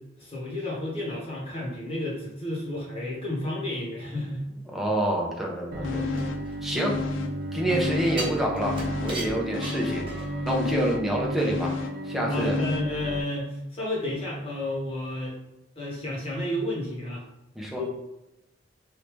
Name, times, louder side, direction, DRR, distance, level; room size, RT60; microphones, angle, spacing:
voice 1, 0.2-4.5 5.8-6.0 12.3-15.4 15.8-17.2 17.8-17.9, left 1 dB, 30° left, -5 dB, 1.2 m, -32 dB
voice 2, 4.7-6.4 6.6-6.9 7.5-10.0 10.4-11.7 12.0-12.6 17.5-17.8, right 1 dB, ahead, -2 dB, 0.6 m, -27 dB
Bowed string instrument, 5.7-13.2, right 1 dB, 50° right, 0.3 m, -32 dB
sound 1, 5.8-6.5 6.8-8.3 8.6-13.0 13.3-13.4, left 8 dB, 75° left, 0.4 m, -34 dB
sound 2, 6.2-7.3 8.2-10.5 10.9-11.0, right 2 dB, 30° right, 0.9 m, -37 dB
3.3 x 2.7 x 3.1 m, 0.91 s
head